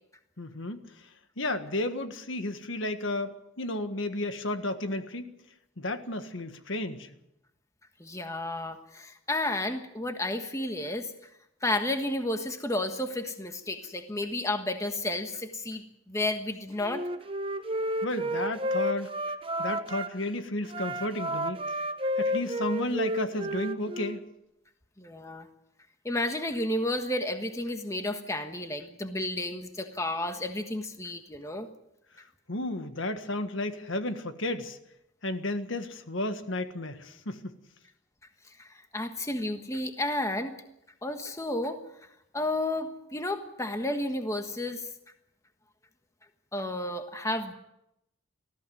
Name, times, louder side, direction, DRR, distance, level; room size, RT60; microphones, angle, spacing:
voice 1, 0.4-1.1 1.4-5.3 5.8-7.1 18.0-19.1 19.6-21.8 22.2-24.2 32.5-34.8 35.2-37.5, left 1 dB, 70° left, 8 dB, 1.6 m, -33 dB
voice 2, 8.0-11.1 11.6-17.0 25.0-25.5 26.0-31.7 38.6-40.5 41.0-41.8 42.3-44.9 46.5-47.5, left 1 dB, 15° left, 6 dB, 1.4 m, -32 dB
Wind instrument woodwind instrument, 16.8-20.1 20.6-24.2, equal, 25° right, 1.0 m, -31 dB
20.0 x 14.5 x 9.3 m, 0.84 s
head